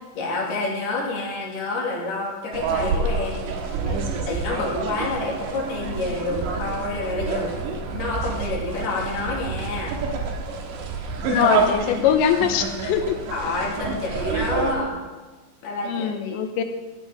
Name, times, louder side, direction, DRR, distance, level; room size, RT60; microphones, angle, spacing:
voice 1, 0.2-3.6 3.9-7.6 7.9-10.0 13.3-15.0 15.6-16.4, left 3 dB, 65° left, -3 dB, 4.2 m, -28 dB
sound 1, 2.5-14.8, right 4 dB, 75° right, 3.5 m, -28 dB
voice 2, 11.3-13.2 15.8-16.6, left 9 dB, 85° left, 7 dB, 3.2 m, -22 dB
16.0 x 8.9 x 4.9 m, 1.3 s
omnidirectional pair, 5.1 m